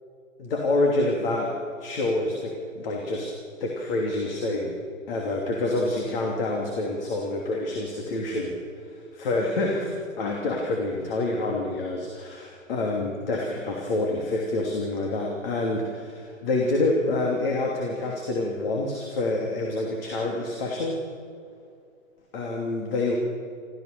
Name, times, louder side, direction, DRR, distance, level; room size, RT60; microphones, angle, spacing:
voice 1, 0.4-1.5 1.8-3.3 3.6-4.7 5.1-8.6 9.1-21.0 22.3-23.2, left 2 dB, 45° left, 0 dB, 3.0 m, -27 dB
28.0 x 14.0 x 6.8 m, 2.3 s
figure-of-eight pair, 120°, 40 cm